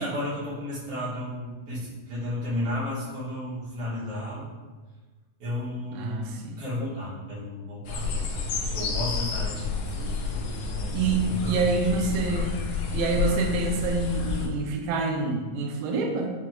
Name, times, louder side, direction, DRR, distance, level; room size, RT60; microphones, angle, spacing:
voice 1, 0.0-4.5 5.4-12.3, left 1 dB, 70° right, -11 dB, 0.8 m, -34 dB
voice 2, 5.9-6.6 10.9-12.6 12.9-16.3, right 3 dB, 85° right, 2 dB, 2.3 m, -27 dB
sound 1, 7.8-14.5, left 4 dB, 85° left, 1.7 m, -30 dB
6.0 x 3.1 x 2.3 m, 1.3 s
omnidirectional pair, 3.9 m